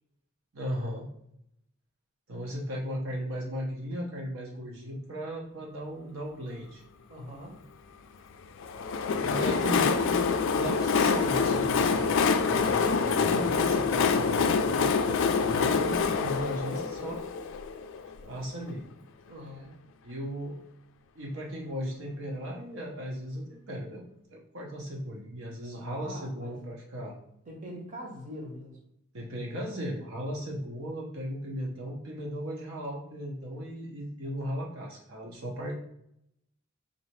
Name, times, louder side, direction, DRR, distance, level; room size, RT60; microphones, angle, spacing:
voice 1, 0.5-1.1 2.3-6.8 9.2-17.2 18.2-18.8 20.0-20.6 21.1-24.0 24.3-27.1 29.1-35.7, equal, 70° right, -2 dB, 0.8 m, -36 dB
voice 2, 7.1-7.6 19.3-19.7 25.9-26.6 27.5-28.7, equal, 40° right, 0 dB, 0.9 m, -43 dB
Train, 8.6-18.3, left 5 dB, 60° left, 0.3 m, -26 dB
3.9 x 2.7 x 3.1 m, 0.77 s
head